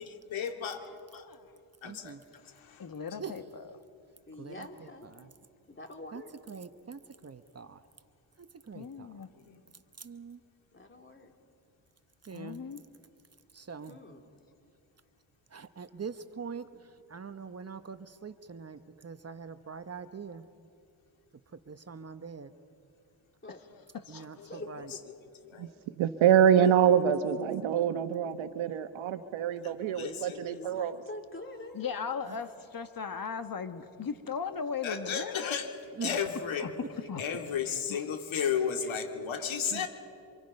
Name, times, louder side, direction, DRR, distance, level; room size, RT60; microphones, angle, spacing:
voice 1, 0.0-0.8 1.8-2.2 2.4-2.9 9.3-9.6 24.4-25.0 25.4-25.7 26.8-26.9 29.6-30.5 34.8-35.7 36.0-36.7 37.2-39.9, left 7 dB, 80° left, 4 dB, 2.3 m, -34 dB
voice 2, 0.8-1.5 2.8-3.8 5.1-5.3 8.7-9.3 12.3-12.8 23.5-24.6 27.7-28.0 28.2-28.5 30.5-30.6 31.6-35.7 36.6-37.2 37.7-38.6 39.0-39.6, left 6 dB, 45° left, 8 dB, 1.6 m, -39 dB
voice 3, 1.8-2.2 3.2-3.3 4.4-5.3 6.1-6.2 6.5-7.8 8.4-9.2 10.0-10.4 12.2-12.6 13.5-14.0 15.5-20.4 21.5-22.5 24.1-24.9 32.3-32.4 36.0-36.2, right 6 dB, 30° right, 10 dB, 1.0 m, -43 dB
voice 4, 4.3-5.1 5.7-6.3 10.7-11.3 13.9-14.2 23.4-23.6 24.5-25.0 30.5-31.9, left 2 dB, 25° left, 3 dB, 3.1 m, -45 dB
voice 5, 26.0-31.0 39.7-39.8, right 9 dB, 90° right, 10 dB, 1.2 m, -25 dB
28.0 x 26.0 x 5.4 m, 2.5 s
cardioid pair, 75°, 46 cm